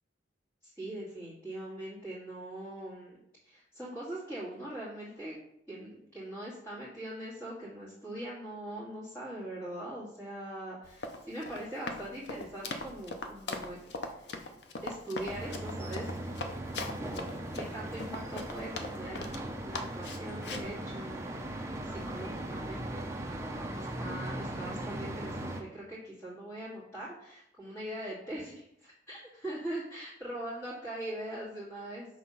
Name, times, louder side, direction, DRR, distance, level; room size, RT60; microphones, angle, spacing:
voice 1, 0.6-3.2 3.4-5.4 5.7-13.8 14.1-14.3 14.8-16.1 16.3-19.4 19.6-32.1, right 1 dB, 10° left, -13 dB, 2.3 m, -42 dB
Run, 10.8-19.4 19.7-20.7, left 3 dB, 65° left, 0.6 m, -40 dB
sound 1, 15.3-25.6, right 1 dB, 15° right, 0.6 m, -39 dB
6.2 x 3.5 x 5.4 m, 0.77 s
head